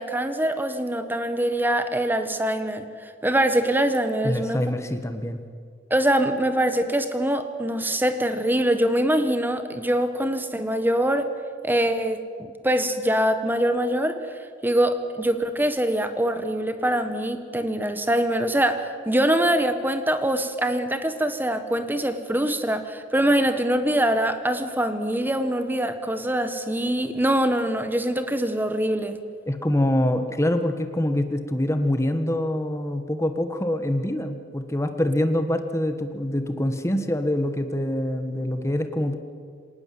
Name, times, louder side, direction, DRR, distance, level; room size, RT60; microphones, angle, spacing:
voice 1, 0.0-4.6 5.9-11.3 11.6-14.2 14.6-29.2, right 1 dB, 10° right, 8 dB, 1.5 m, -24 dB
voice 2, 4.2-5.4 29.5-39.1, left 1 dB, 15° left, 8 dB, 1.5 m, -25 dB
26.0 x 18.5 x 7.8 m, 2.1 s
head